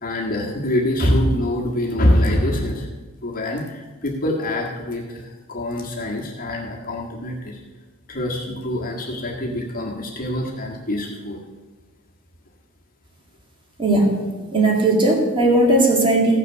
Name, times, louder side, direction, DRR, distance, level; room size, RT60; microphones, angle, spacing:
voice 1, 0.0-2.9 3.2-7.6 8.1-11.4, left 1 dB, 40° left, -1 dB, 1.7 m, -24 dB
voice 2, 13.8-16.4, right 2 dB, 25° right, -1 dB, 2.3 m, -17 dB
15.0 x 6.5 x 6.4 m, 1.3 s
head